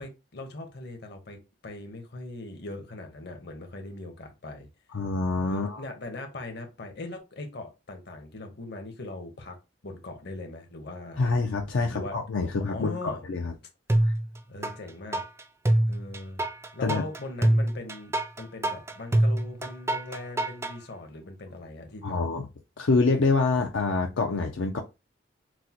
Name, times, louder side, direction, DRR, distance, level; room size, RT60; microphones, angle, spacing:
voice 1, 0.0-1.4 1.6-4.7 5.4-9.6 9.8-11.3 11.9-12.2 12.7-13.2 14.5-15.2 15.9-16.4 16.7-22.2, left 2 dB, 60° left, 1.0 m, -40 dB
voice 2, 4.9-5.8 11.2-13.5 14.0-14.1 16.8-17.0 22.0-22.5 22.8-24.8, left 3 dB, 85° left, 0.5 m, -26 dB
sound 1, 13.9-14.7 15.1-20.7, right 1 dB, 15° right, 0.3 m, -25 dB
6.1 x 2.1 x 2.9 m
head